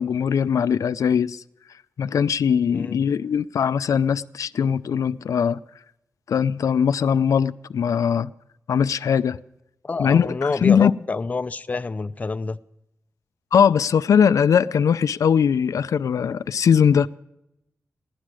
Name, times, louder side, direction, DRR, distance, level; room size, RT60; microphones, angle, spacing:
voice 1, 0.0-1.4 2.0-5.6 6.3-8.3 8.7-9.4 10.0-10.9 13.5-17.1, left 7 dB, 90° left, 0.4 m, -20 dB
voice 2, 9.8-12.6, left 3 dB, 25° left, 0.5 m, -27 dB
16.5 x 11.5 x 6.2 m
wide cardioid pair, 180°, 5 cm